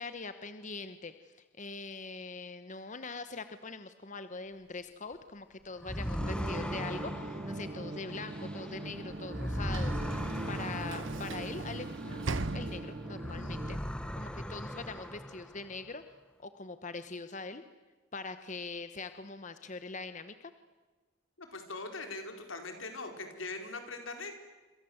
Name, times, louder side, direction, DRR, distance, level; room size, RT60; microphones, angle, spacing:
voice 1, 0.0-12.3 12.5-13.8 14.1-16.0 16.4-17.6 18.1-20.3, left 3 dB, 40° left, 10 dB, 1.0 m, -43 dB
sound 1, 5.8-12.7 13.1-15.8, equal, 5° left, 1.1 m, -39 dB
sound 2, 6.2-13.8, right 2 dB, 35° right, 0.9 m, -41 dB
Sliding door / Slam, 8.6-13.3, right 3 dB, 75° right, 1.1 m, -41 dB
voice 2, 21.4-24.3, left 3 dB, 85° left, 5 dB, 4.4 m, -41 dB
27.0 x 26.5 x 7.9 m, 1.3 s
head